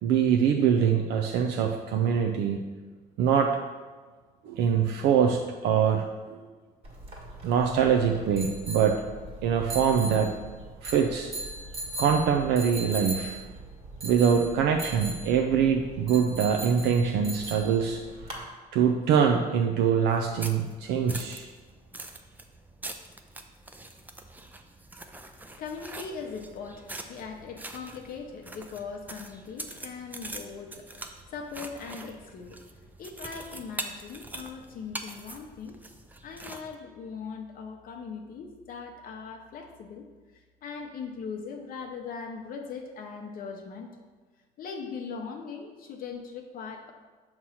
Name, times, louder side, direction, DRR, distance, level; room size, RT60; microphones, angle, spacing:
voice 1, 0.0-2.6 3.2-3.6 4.4-6.1 7.4-9.0 9.4-10.4 10.8-11.3 12.0-13.4 14.0-18.4 18.7-21.5, right 7 dB, 80° right, 3 dB, 0.4 m, -24 dB
sound 1, 6.8-18.4, right 2 dB, 35° right, 1.6 m, -39 dB
sound 2, 20.1-36.7, right 2 dB, 10° right, 0.4 m, -43 dB
voice 2, 25.3-32.6 33.0-35.8 36.2-40.1 40.3-43.9 44.6-46.9, left 5 dB, 55° left, 2 dB, 0.7 m, -40 dB
6.1 x 3.0 x 5.5 m, 1.4 s
cardioid pair, 110°, 17 cm